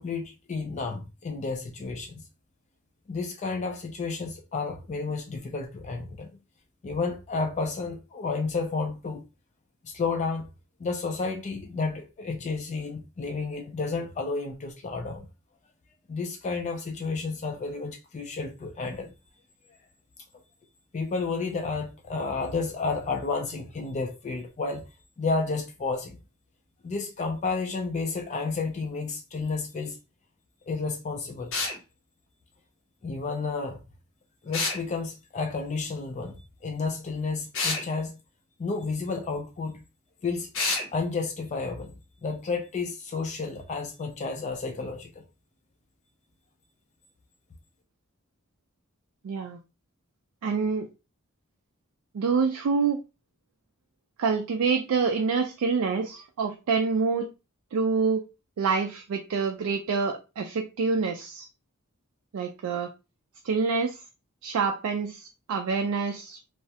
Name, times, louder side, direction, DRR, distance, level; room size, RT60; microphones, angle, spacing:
voice 1, 0.0-2.3 3.1-6.3 6.8-9.2 9.8-10.5 10.8-15.3 16.1-19.1 20.9-24.9 25.2-26.2 26.8-30.0 30.7-31.5 33.0-33.8 34.4-36.4 36.6-38.2 38.6-39.8 40.2-40.5 40.9-41.9 42.2-45.2, left 4 dB, 35° left, 0.3 m, -31 dB
sound 1, 31.5-31.8 34.5-34.8 37.5-37.8 40.5-40.9, left 3 dB, 60° left, 0.7 m, -27 dB
voice 2, 49.2-49.6 50.4-50.9 52.1-53.0 54.2-57.3 57.7-58.2 58.6-61.5 62.3-62.9 63.4-64.0 64.4-66.4, right 5 dB, 75° right, 0.4 m, -26 dB
2.3 x 2.0 x 2.7 m
head